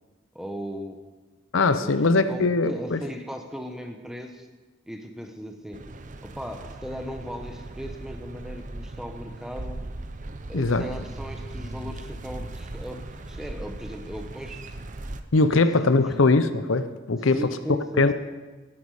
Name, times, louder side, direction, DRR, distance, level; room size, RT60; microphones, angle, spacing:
voice 1, 0.3-1.0 1.8-2.0 2.3-4.5 4.9-5.9 6.2-9.8 10.5-14.8 15.5-15.6 15.9-16.0 17.3-18.1, equal, 5° right, 4 dB, 1.0 m, -37 dB
voice 2, 1.5-3.0 10.5-10.9 15.3-17.4 18.0-18.1, left 3 dB, 75° left, 11 dB, 0.7 m, -21 dB
sound 1, 5.7-15.2, right 2 dB, 40° right, 0.7 m, -38 dB
17.5 x 9.6 x 4.9 m, 1.3 s
head